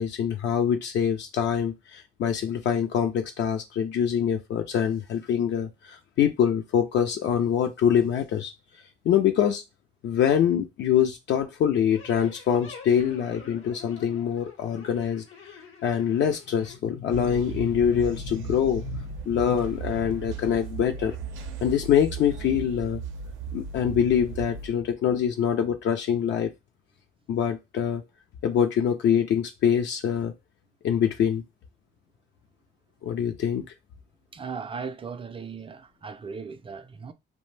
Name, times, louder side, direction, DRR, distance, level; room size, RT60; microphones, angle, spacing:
voice 1, 0.0-8.5 9.0-9.6 10.0-15.2 15.8-21.2 21.6-23.0 23.5-26.5 27.3-28.0 28.4-30.3 30.8-31.4 33.0-33.6, left 8 dB, 65° left, 0.4 m, -24 dB
sound 1, 11.9-16.8, left 5 dB, 85° left, 0.8 m, -48 dB
sound 2, 17.1-24.7, right 5 dB, 85° right, 0.5 m, -37 dB
voice 2, 34.3-37.1, right 5 dB, 25° right, 0.3 m, -37 dB
2.5 x 2.0 x 3.1 m
cardioid pair, 90°, 20 cm